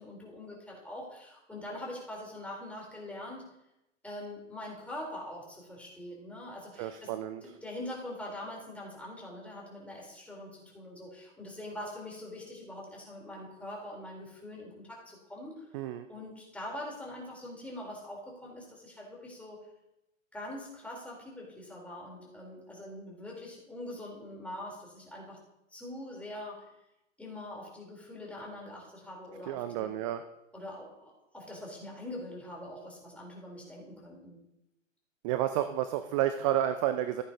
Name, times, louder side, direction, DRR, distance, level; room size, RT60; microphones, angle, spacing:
voice 1, 0.0-3.5 4.0-7.1 7.4-15.6 16.1-19.6 20.3-25.4 25.7-26.7 27.2-29.9 30.5-34.4, left 1 dB, 5° left, -3 dB, 3.8 m, -43 dB
voice 2, 6.8-7.4 15.7-16.1 29.5-30.2 35.2-37.2, right 12 dB, 25° right, 10 dB, 0.5 m, -30 dB
15.5 x 8.8 x 2.9 m, 0.87 s
figure-of-eight pair, 110°, 39 cm